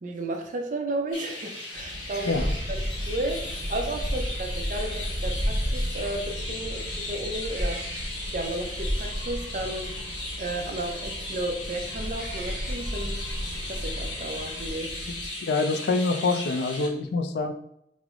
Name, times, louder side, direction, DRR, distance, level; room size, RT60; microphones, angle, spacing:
voice 1, 0.0-2.8 3.1-8.0 8.3-10.1 10.4-13.2 13.5-15.0, right 2 dB, 45° right, 3 dB, 0.5 m, -33 dB
Chirp tweet, 1.1-16.9, left 2 dB, 85° left, 0.9 m, -37 dB
sound 1, 1.7-15.3, equal, 70° right, 1.0 m, -42 dB
sound 2, 2.3-14.7, equal, 30° left, 0.8 m, -33 dB
voice 2, 15.4-17.5, left 3 dB, 60° left, 7 dB, 0.3 m, -25 dB
3.1 x 2.0 x 3.6 m, 0.77 s
head